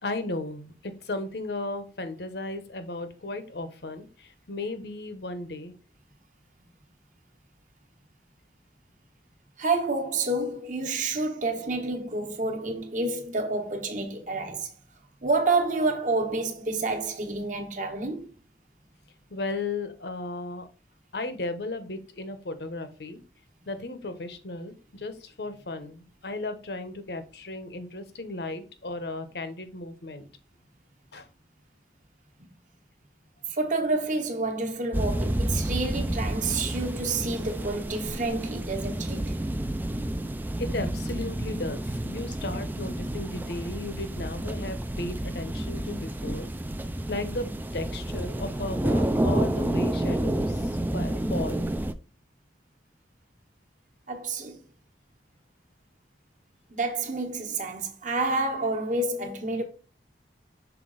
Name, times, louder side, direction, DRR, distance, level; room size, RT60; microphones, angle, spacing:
voice 1, 0.0-5.7 19.3-20.7 21.1-23.2 23.7-30.3 31.1-31.3 40.6-46.5 47.1-51.7, left 2 dB, 65° left, 0.9 m, -35 dB
voice 2, 9.6-14.7 15.2-18.3 33.5-39.4 54.1-54.6 56.7-59.6, right 3 dB, 45° right, 1.2 m, -29 dB
sound 1, 34.9-51.9, right 1 dB, 10° right, 0.3 m, -30 dB
6.0 x 4.1 x 3.9 m
head